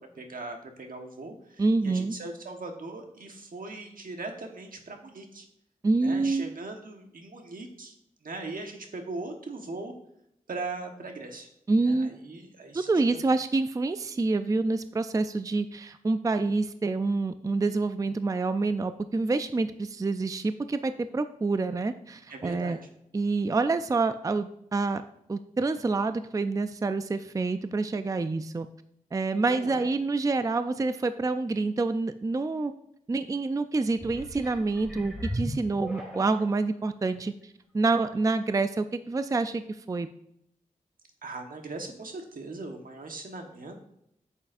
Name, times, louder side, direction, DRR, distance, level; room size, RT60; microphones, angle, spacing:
voice 1, 0.1-5.5 6.0-7.9 8.2-9.9 10.5-11.5 11.8-13.2 22.3-22.8 29.5-29.9 41.2-43.8, right 3 dB, 80° right, 3 dB, 1.3 m, -39 dB
voice 2, 1.6-2.1 5.8-6.5 11.7-12.1 12.7-22.8 23.1-25.0 25.3-28.7 29.1-32.7 33.1-37.3 37.7-40.1, right 3 dB, 25° right, 11 dB, 0.3 m, -27 dB
sound 1, 33.9-36.6 37.2-37.3, equal, 5° right, 2.1 m, -37 dB
8.8 x 7.2 x 2.6 m, 0.76 s
wide cardioid pair, 95°, 14 cm